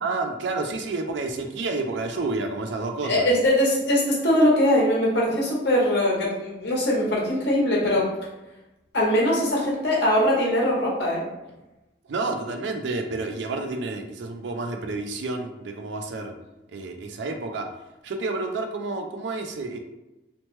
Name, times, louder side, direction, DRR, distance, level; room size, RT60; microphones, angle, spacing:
voice 1, 0.0-3.3 12.1-16.3 16.7-17.7 18.0-19.8, right 3 dB, 80° right, 5 dB, 0.4 m, -30 dB
voice 2, 3.0-8.1 8.9-11.2, left 1 dB, 65° left, -4 dB, 0.9 m, -21 dB
2.9 x 2.1 x 3.0 m, 0.99 s
head